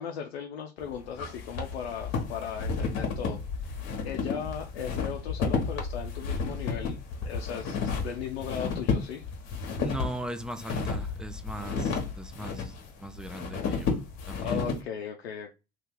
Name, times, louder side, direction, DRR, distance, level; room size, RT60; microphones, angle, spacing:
voice 1, 0.0-3.8 4.0-9.2 14.4-15.5, left 7 dB, 90° left, 0.5 m, -37 dB
sound 1, 0.8-14.8, left 5 dB, 55° left, 1.1 m, -32 dB
voice 2, 9.8-14.0 14.3-14.6, right 1 dB, 5° right, 0.4 m, -39 dB
2.8 x 2.4 x 3.6 m
hypercardioid pair, 65°, 31 cm